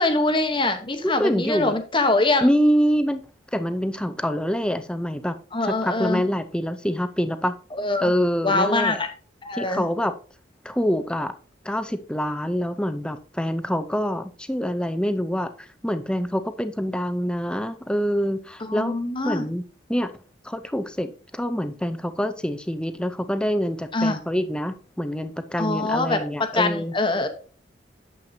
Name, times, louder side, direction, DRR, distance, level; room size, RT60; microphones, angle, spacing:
voice 1, 0.0-2.5 5.5-6.2 7.7-8.1 8.4-9.1 9.4-9.8 18.6-19.4 23.9-24.2 25.6-26.2 26.5-27.3, left 2 dB, 25° left, 6 dB, 1.0 m, -23 dB
voice 2, 1.0-1.7 2.4-3.2 3.5-5.4 5.6-7.5 8.0-9.0 9.5-10.1 10.6-11.3 11.6-19.0 19.2-19.6 19.9-20.1 20.4-26.9, equal, 5° left, 10 dB, 0.5 m, -25 dB
8.8 x 7.6 x 2.7 m, 0.40 s
head